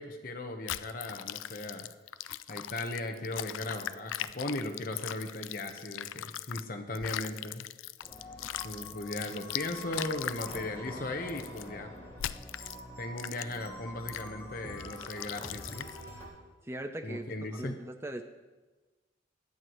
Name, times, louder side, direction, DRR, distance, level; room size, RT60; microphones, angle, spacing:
voice 1, 0.0-1.9 2.5-7.7 8.6-11.9 13.0-15.9 17.0-17.8, left 2 dB, 45° left, 5 dB, 1.0 m, -37 dB
sound 1, 0.7-6.6 6.9-10.6 11.3-11.6 12.2-12.8 13.2-13.7 14.1-14.3 14.8-16.0, left 12 dB, 85° left, 0.4 m, -40 dB
sound 2, 8.0-16.3, equal, 15° left, 3.2 m, -46 dB
voice 2, 16.6-17.2 17.6-18.2, right 1 dB, 15° right, 7 dB, 0.5 m, -39 dB
23.5 x 8.1 x 3.1 m, 1.2 s
head